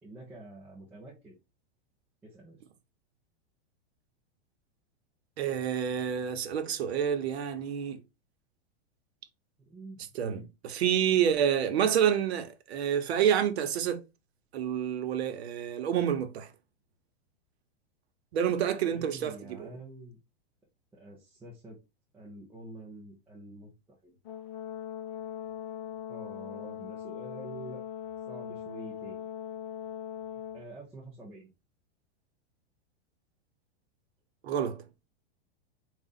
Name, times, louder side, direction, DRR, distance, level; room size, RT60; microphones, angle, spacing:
voice 1, 0.0-1.4 2.2-2.6 9.6-10.5 18.8-20.2 20.9-21.8 22.1-23.7 24.0-24.1 26.1-27.8 28.3-29.2 30.5-31.5, right 2 dB, 5° right, 0.5 m, -47 dB
voice 2, 5.4-8.0 10.1-14.0 14.5-16.5 18.3-19.7 34.4-34.8, right 9 dB, 80° right, 1.0 m, -28 dB
Brass instrument, 24.3-30.6, left 10 dB, 35° left, 0.8 m, -40 dB
4.9 x 2.4 x 3.9 m
supercardioid pair, 175°, 32 cm